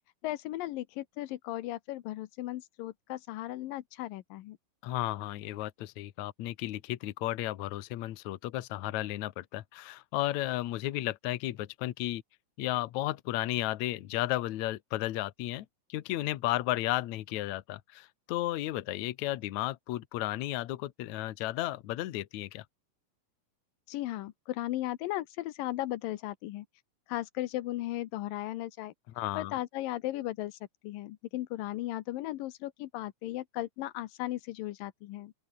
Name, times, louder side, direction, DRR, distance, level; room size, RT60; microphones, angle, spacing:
voice 1, 0.2-4.6 23.9-26.7 27.1-28.9 29.4-35.3, left 15 dB, 85° left, 2.6 m, -36 dB
voice 2, 4.8-12.2 12.6-22.6 29.2-29.5, left 16 dB, 65° left, 2.2 m, -33 dB
open air
omnidirectional pair, 3.9 m